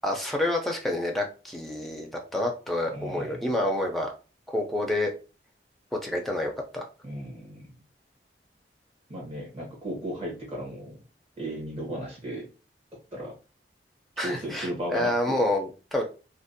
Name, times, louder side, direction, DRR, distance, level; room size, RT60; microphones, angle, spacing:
voice 1, 0.0-4.1 4.5-5.1 5.9-6.8 14.2-16.0, left 1 dB, ahead, 1 dB, 0.4 m, -28 dB
voice 2, 2.9-3.5 7.0-7.6 9.1-11.0 11.4-12.5 13.1-13.3 14.2-15.4, equal, 35° right, -2 dB, 1.0 m, -35 dB
2.5 x 2.0 x 2.5 m, 0.34 s
head